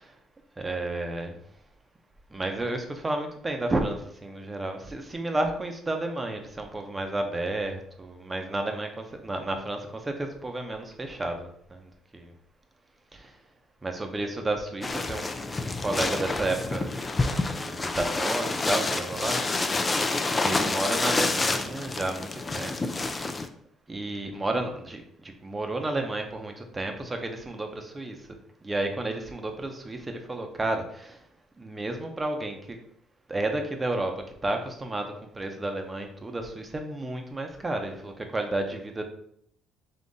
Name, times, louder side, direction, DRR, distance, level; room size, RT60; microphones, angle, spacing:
voice 1, 0.6-1.3 2.3-12.3 13.1-13.4 13.8-16.9 17.6-19.4 20.4-23.3 23.9-28.3 28.6-31.2 31.6-32.8 33.3-39.0, right 2 dB, 20° right, 4 dB, 0.7 m, -32 dB
sound 1, 14.8-23.5, left 3 dB, 20° left, 0.4 m, -28 dB
3.7 x 2.9 x 3.9 m, 0.68 s
cardioid pair, 115°, 0 cm